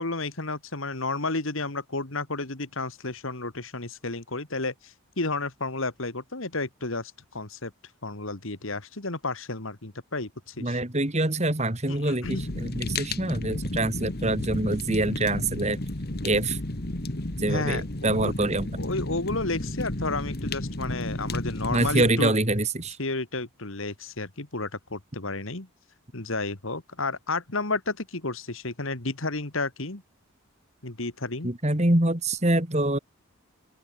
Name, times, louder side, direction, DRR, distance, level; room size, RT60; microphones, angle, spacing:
voice 1, 0.0-7.7 8.0-10.8 11.9-12.4 17.5-18.3 18.8-22.3 23.0-25.7 26.1-30.0 30.8-31.5, left 3 dB, 65° left, 2.3 m, -32 dB
voice 2, 10.6-15.8 16.2-16.6 17.4-18.7 21.7-23.0 31.4-33.0, right 2 dB, 30° right, 2.6 m, -25 dB
Fire, 12.2-22.1, left 1 dB, 45° left, 1.8 m, -32 dB
open air
head